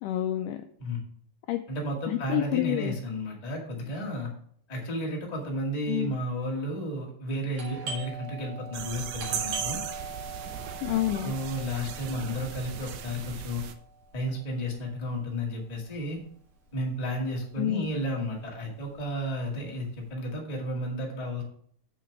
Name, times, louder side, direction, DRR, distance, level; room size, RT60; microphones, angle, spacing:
voice 1, 0.0-0.6 1.5-1.6 2.1-3.0 5.9-6.1 10.8-11.3 17.6-17.9, left 14 dB, 80° left, 7 dB, 1.9 m, -28 dB
voice 2, 1.7-4.3 4.7-9.8 11.2-13.6 14.1-16.2 16.7-21.4, equal, 15° left, -2 dB, 1.3 m, -32 dB
Doorbell, 7.5-16.9 17.2-17.3 17.9-18.3 18.6-20.0, right 4 dB, 55° right, 2.7 m, -42 dB
sound 1, 8.7-13.7, right 8 dB, 75° right, 1.7 m, -37 dB
7.1 x 5.9 x 5.8 m, 0.62 s
omnidirectional pair, 4.1 m